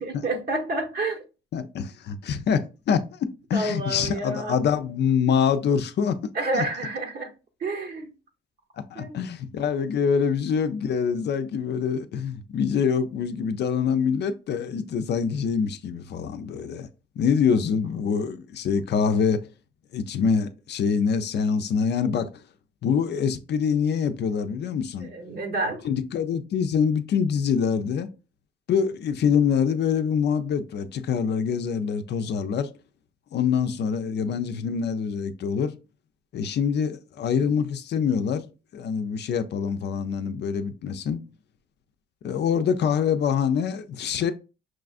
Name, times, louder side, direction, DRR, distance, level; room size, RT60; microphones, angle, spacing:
voice 1, 0.0-1.2 3.5-4.6 6.3-7.3 7.6-8.1 8.9-9.2 25.0-25.8, right 2 dB, 55° right, 1.0 m, -29 dB
voice 2, 1.5-6.6 8.8-16.9 17.2-19.4 19.9-22.4 22.8-25.1 25.8-28.1 28.7-32.7 33.3-35.7 36.3-38.5 38.7-41.2 42.2-44.3, left 6 dB, 60° left, 0.5 m, -25 dB
6.0 x 2.4 x 2.4 m
cardioid pair, 90°, 20 cm